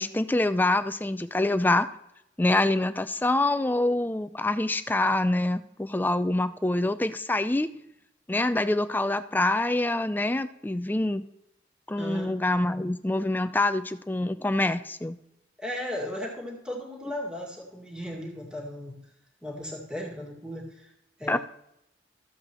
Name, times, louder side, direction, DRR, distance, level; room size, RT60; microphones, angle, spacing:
voice 1, 0.0-1.9 2.4-7.7 8.3-11.3 11.9-15.2 21.3-21.4, left 2 dB, 10° left, 11 dB, 0.4 m, -25 dB
voice 2, 11.9-12.3 15.6-19.0 19.4-20.9 21.2-21.4, left 1 dB, 5° right, -3 dB, 2.0 m, -36 dB
14.0 x 7.8 x 3.0 m, 0.80 s
head